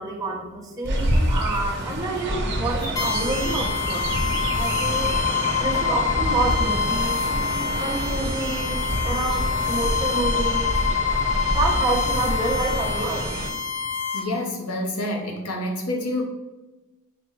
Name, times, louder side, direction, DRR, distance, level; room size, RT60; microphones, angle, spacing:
voice 1, 0.0-5.2 5.6-7.2 7.8-10.8 11.5-13.3, right 3 dB, 15° right, -3 dB, 0.8 m, -28 dB
Chirp tweet, 0.8-13.5, equal, 50° right, 0.8 m, -27 dB
sound 1, 3.0-14.2, left 6 dB, 15° left, 0.8 m, -26 dB
voice 2, 14.1-16.2, left 1 dB, 80° left, 1 dB, 0.8 m, -28 dB
5.1 x 2.2 x 4.5 m, 1.1 s
head